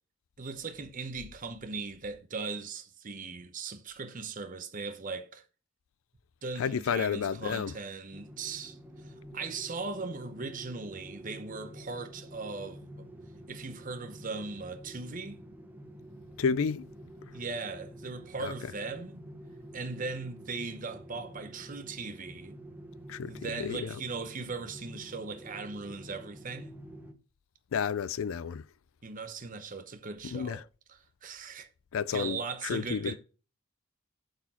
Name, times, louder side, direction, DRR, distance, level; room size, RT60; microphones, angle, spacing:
voice 1, 0.4-5.4 6.4-12.8 13.5-15.4 17.3-19.2 19.7-22.5 23.3-26.7 29.0-30.6 30.9-31.7 32.1-33.2, right 4 dB, 40° right, 0.8 m, -39 dB
voice 2, 6.6-7.7 16.4-16.9 18.4-18.5 23.1-24.0 27.7-28.6 30.2-30.6 31.9-33.2, left 6 dB, 70° left, 0.4 m, -31 dB
sound 1, 8.1-27.1, right 1 dB, 10° right, 0.9 m, -48 dB
11.0 x 4.6 x 4.2 m
head